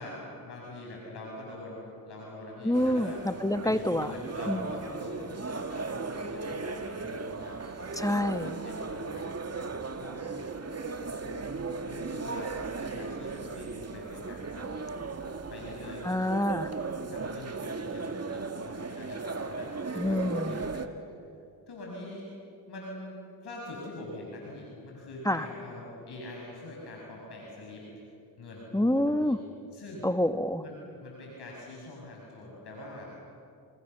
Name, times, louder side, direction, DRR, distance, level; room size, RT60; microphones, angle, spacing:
voice 1, 0.0-3.2 3.6-8.0 8.4-9.2 9.9-10.3 11.1-14.7 15.5-16.5 17.1-21.1 21.7-22.3 22.7-27.8 28.4-29.4 29.7-30.1 30.6-33.2, left 1 dB, 70° left, -3 dB, 6.9 m, -44 dB
voice 2, 2.6-4.1 4.5-4.6 8.0-8.6 16.0-16.7 20.0-20.7 25.3-25.5 28.7-29.4 30.0-30.6, left 1 dB, 10° left, 10 dB, 1.4 m, -27 dB
sound 1, 2.7-20.9, right 4 dB, 35° right, 2.1 m, -37 dB
29.0 x 29.0 x 6.9 m, 2.5 s
cardioid pair, 60°, 41 cm